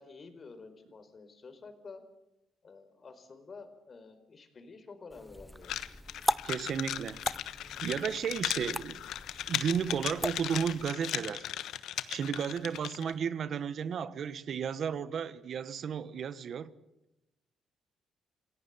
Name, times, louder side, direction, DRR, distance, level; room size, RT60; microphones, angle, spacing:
voice 1, 0.0-2.0 2.6-5.7 12.5-12.6, left 4 dB, 40° left, 4.6 m, -50 dB
sound 1, 5.1-10.9, equal, 5° left, 0.8 m, -39 dB
sound 2, 5.6-13.1, left 11 dB, 80° left, 1.2 m, -37 dB
voice 2, 6.4-7.2 7.8-9.0 9.5-11.5 12.1-16.7, right 7 dB, 60° right, 1.3 m, -33 dB
28.5 x 17.5 x 8.5 m
cardioid pair, 90°, 0 cm